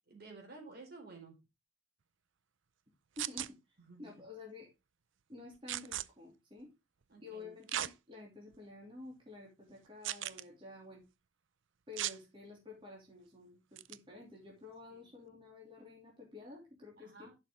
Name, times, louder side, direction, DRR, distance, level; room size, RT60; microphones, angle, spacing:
voice 1, 0.1-1.4 3.9-4.0 7.1-7.5 14.9-15.1 17.0-17.3, right 3 dB, 50° right, 1 dB, 4.0 m, -52 dB
voice 2, 3.2-4.7 5.3-6.7 7.2-11.0 11.9-17.3, left 3 dB, 25° right, -3 dB, 3.1 m, -51 dB
sound 1, 3.2-3.5 5.7-6.0 7.7-7.9 8.5-8.6 10.0-10.4 12.0-12.2 13.8-14.0, right 12 dB, 75° right, 0.5 m, -37 dB
11.0 x 6.4 x 3.8 m, 0.25 s
head